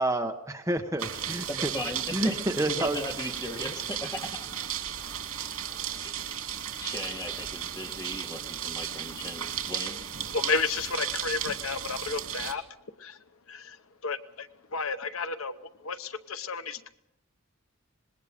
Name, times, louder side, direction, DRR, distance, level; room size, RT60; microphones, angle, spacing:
voice 1, 0.0-0.3 0.7-1.7 2.1-3.0, right 1 dB, 15° right, 4 dB, 1.2 m, -28 dB
sound 1, 1.0-12.5, right 9 dB, 85° right, 2.7 m, -35 dB
voice 2, 1.5-2.3 2.7-4.5 6.0-6.2 6.8-10.0, left 1 dB, 15° left, 1 dB, 2.4 m, -37 dB
voice 3, 10.3-12.6 13.0-16.9, left 4 dB, 75° left, 11 dB, 0.9 m, -32 dB
25.5 x 21.0 x 5.1 m, 0.80 s
head